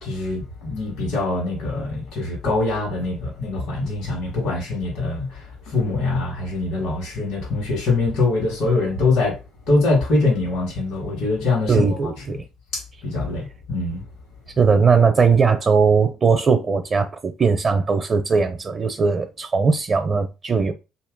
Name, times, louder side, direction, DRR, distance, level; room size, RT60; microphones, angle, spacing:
voice 1, 0.0-9.4 9.7-12.1 12.7-14.0, left 3 dB, 75° left, 1.7 m, -23 dB
voice 2, 11.7-12.4 14.6-20.7, right 5 dB, 40° right, 0.6 m, -19 dB
2.9 x 2.9 x 3.8 m
supercardioid pair, 65°, 0 cm